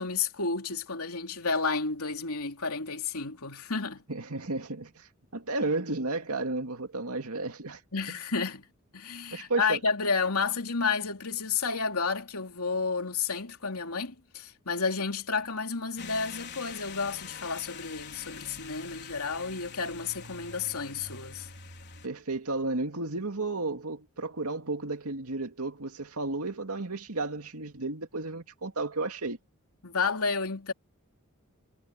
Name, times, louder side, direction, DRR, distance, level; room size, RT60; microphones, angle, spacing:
voice 1, 0.0-4.0 7.9-8.7 8.9-21.5 29.8-30.7, left 4 dB, 85° left, 3.1 m, -31 dB
voice 2, 4.1-7.8 9.3-9.8 22.0-29.4, right 2 dB, 85° right, 2.3 m, -33 dB
sound 1, 16.0-22.1, left 5 dB, 50° left, 4.5 m, -44 dB
head